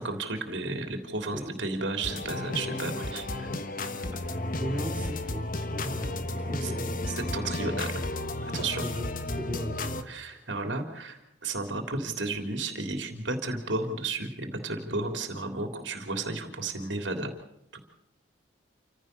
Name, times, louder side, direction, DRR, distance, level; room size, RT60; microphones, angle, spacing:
voice 1, 0.0-3.3 6.6-6.7 7.1-8.0 8.4-8.8 10.1-17.3 17.7-17.8, right 3 dB, 85° right, 6 dB, 3.3 m, -33 dB
sound 1, 2.0-10.0, left 2 dB, 50° left, 1.3 m, -33 dB
voice 2, 4.1-7.0 8.5-10.1, equal, 10° right, -1 dB, 4.6 m, -37 dB
28.5 x 15.5 x 6.8 m, 0.82 s
head